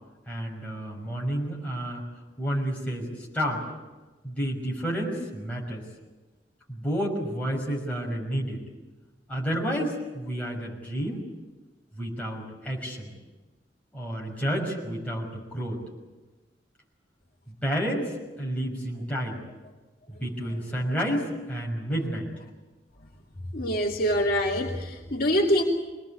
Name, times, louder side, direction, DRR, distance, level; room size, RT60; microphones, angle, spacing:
voice 1, 0.3-2.0 2.4-3.6 4.2-5.9 6.7-8.6 9.3-11.2 11.9-13.1 13.9-15.8 17.5-18.1 18.4-19.4 20.1-22.3, equal, 10° left, -3 dB, 5.9 m, -30 dB
voice 2, 23.5-25.6, equal, 55° left, -2 dB, 2.6 m, -25 dB
24.5 x 19.5 x 8.6 m, 1.2 s
head